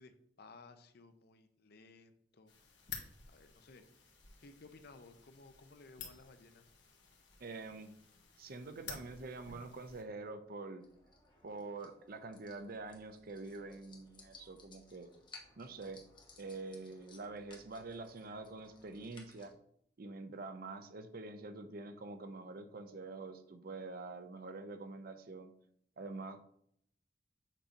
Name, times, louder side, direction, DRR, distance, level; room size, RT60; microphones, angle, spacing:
voice 1, 0.0-2.5 3.3-3.8 4.4-6.7, left 3 dB, 60° left, 9 dB, 0.6 m, -58 dB
sound 1, 2.5-10.0, left 6 dB, 75° left, 1.2 m, -52 dB
voice 2, 7.4-7.9 8.4-10.8 11.4-15.1 15.6-16.0 16.4-19.5 20.0-25.5 26.0-26.4, right 3 dB, 55° right, 9 dB, 0.6 m, -46 dB
sound 2, 10.8-19.5, left 3 dB, 25° left, 1.1 m, -60 dB
7.3 x 2.7 x 5.1 m, 0.70 s
head